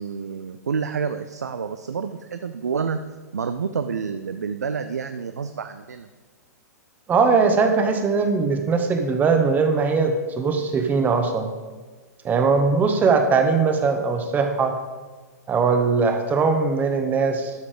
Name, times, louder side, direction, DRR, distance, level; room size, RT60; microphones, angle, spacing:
voice 1, 0.0-3.0 3.3-6.1, right 6 dB, 70° right, 9 dB, 0.5 m, -28 dB
voice 2, 7.1-11.5 12.2-14.8 15.5-17.5, right 4 dB, 20° right, 6 dB, 1.1 m, -20 dB
12.5 x 5.8 x 4.9 m, 1.4 s
figure-of-eight pair, 105°, 9 cm